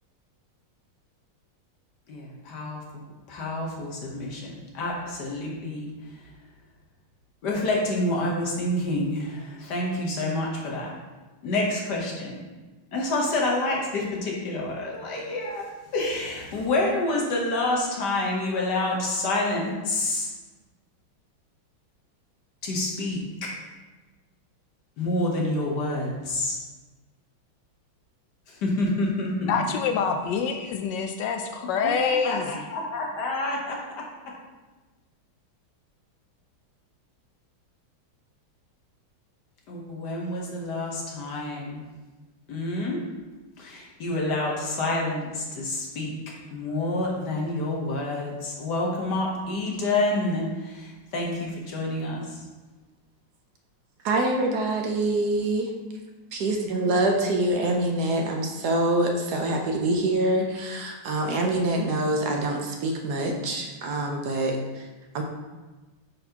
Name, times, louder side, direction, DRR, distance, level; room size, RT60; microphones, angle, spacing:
voice 1, 2.1-5.9 7.4-10.9 11.4-12.4 12.9-20.3 22.6-23.5 25.0-26.6 28.5-29.5 31.8-31.9 32.2-34.0 39.7-41.8 42.5-43.0 43.6-46.1 46.5-52.4, left 2 dB, 60° left, -2 dB, 1.4 m, -28 dB
voice 2, 29.4-32.6, left 6 dB, 75° left, 5 dB, 1.0 m, -26 dB
voice 3, 54.0-55.7 56.3-64.8 65.1-65.2, right 2 dB, 70° right, 2 dB, 1.0 m, -25 dB
8.9 x 4.2 x 2.8 m, 1.2 s
omnidirectional pair, 2.3 m